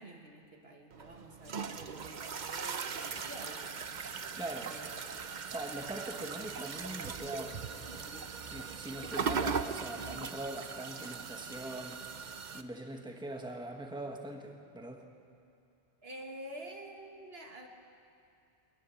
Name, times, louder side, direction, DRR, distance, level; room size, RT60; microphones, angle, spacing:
voice 1, 0.0-4.1 4.6-5.1 6.2-6.4 7.9-8.3 16.0-17.7, right 1 dB, 65° right, 2 dB, 2.1 m, -49 dB
sound 1, 0.9-12.6, right 6 dB, 45° right, 0.8 m, -39 dB
sound 2, 3.0-10.1, right 1 dB, 10° left, 1.6 m, -61 dB
voice 2, 4.4-4.7 5.5-7.6 8.5-12.0 12.5-15.0, right 2 dB, 5° right, 3 dB, 1.5 m, -42 dB
23.0 x 19.5 x 7.2 m, 2.5 s
omnidirectional pair, 1.1 m